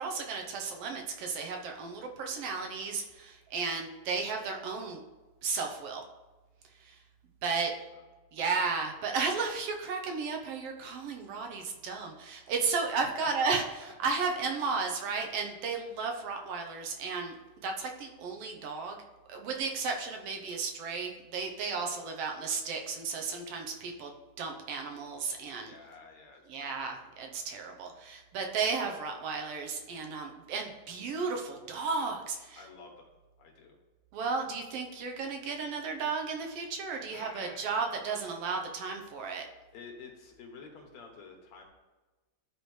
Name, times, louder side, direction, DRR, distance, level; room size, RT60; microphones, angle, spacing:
voice 1, 0.0-5.0 5.4-6.0 6.8-7.0 7.4-7.7 8.3-13.6 14.0-19.0 19.3-25.7 26.5-32.6 34.1-39.5, right 4 dB, 65° right, 3 dB, 1.7 m, -34 dB
voice 2, 13.0-13.7 14.0-14.1 25.6-26.9 32.6-33.1 33.4-33.8 37.1-37.7 39.7-41.6, left 4 dB, 70° left, 1 dB, 2.5 m, -50 dB
14.0 x 4.8 x 3.3 m, 1.2 s
omnidirectional pair, 3.4 m